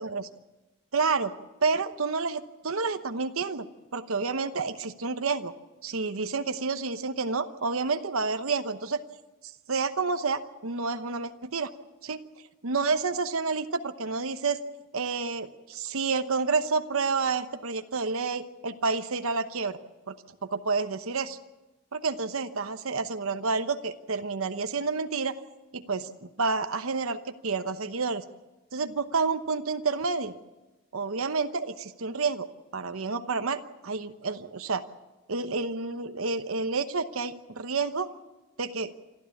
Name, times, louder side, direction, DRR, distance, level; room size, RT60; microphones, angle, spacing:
voice 1, 0.9-1.3 1.6-3.7 3.9-5.5 5.8-9.0 9.7-11.7 12.0-12.2 12.6-14.6 14.9-19.8 20.1-20.2 20.4-21.4 21.9-25.4 25.7-28.2 28.7-30.3 30.9-32.5 32.7-34.8 35.3-38.1 38.6-38.9, right 4 dB, 70° right, 9 dB, 0.9 m, -29 dB
27.5 x 13.0 x 8.5 m, 1.1 s
head